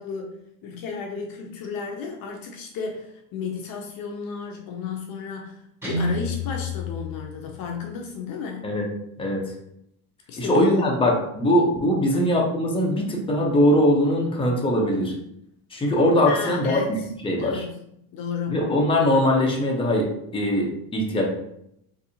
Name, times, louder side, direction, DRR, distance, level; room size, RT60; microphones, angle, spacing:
voice 1, 0.0-8.7 10.3-10.8 12.1-12.4 16.3-17.1 17.4-17.8 18.1-18.7, left 5 dB, 50° left, 2 dB, 0.6 m, -33 dB
Guitar, 5.8-7.9, left 3 dB, 5° right, 1.1 m, -30 dB
voice 2, 9.2-9.5 10.4-15.1 15.7-16.8 17.2-17.6 18.5-21.3, left 1 dB, 10° left, -1 dB, 0.7 m, -21 dB
3.9 x 2.7 x 2.7 m, 0.76 s
supercardioid pair, 105°, 45 cm